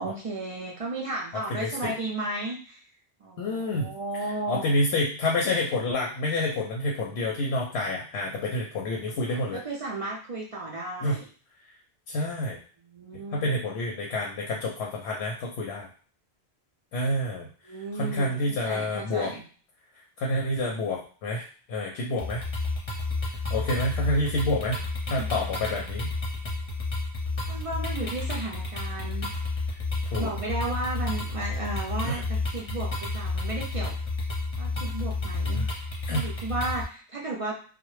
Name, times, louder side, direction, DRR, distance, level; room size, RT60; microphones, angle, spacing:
voice 1, 0.0-2.8 3.2-4.8 9.2-11.3 12.8-13.5 17.6-19.4 25.1-25.3 27.5-29.3 30.2-33.9 34.6-37.5, right 2 dB, 60° right, -3 dB, 0.3 m, -34 dB
voice 2, 1.6-1.9 3.4-3.9 4.5-9.6 11.0-11.2 12.1-12.6 13.1-15.9 16.9-17.5 18.0-19.3 20.2-22.4 23.5-24.8 25.1-26.1 30.1-30.3 32.0-32.2 35.5-35.7 36.1-36.2, left 1 dB, 90° left, -1 dB, 0.8 m, -28 dB
sound 1, 22.2-36.8, left 3 dB, 40° left, 0.6 m, -31 dB
2.1 x 2.0 x 3.0 m, 0.40 s
omnidirectional pair, 1.1 m